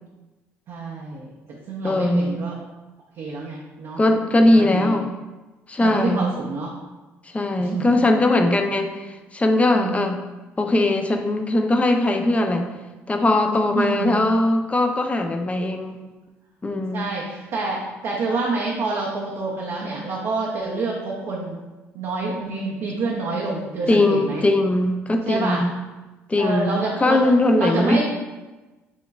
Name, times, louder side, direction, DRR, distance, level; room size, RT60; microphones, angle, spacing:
voice 1, 0.7-1.3 1.7-2.5 3.2-4.0 4.4-5.0 5.8-6.7 7.6-7.9 9.7-10.1 13.8-14.2 16.9-21.6 21.9-24.4 25.3-25.6 26.4-27.3 27.6-28.0, right 3 dB, 65° right, -4 dB, 0.8 m, -27 dB
voice 2, 1.8-2.4 4.0-5.1 5.7-6.3 7.3-10.2 10.6-12.7 13.1-16.0 16.6-17.1 23.9-25.8 26.3-28.0, left 2 dB, 20° left, 5 dB, 0.6 m, -20 dB
7.0 x 2.9 x 2.4 m, 1.2 s
hypercardioid pair, 60°, 6 cm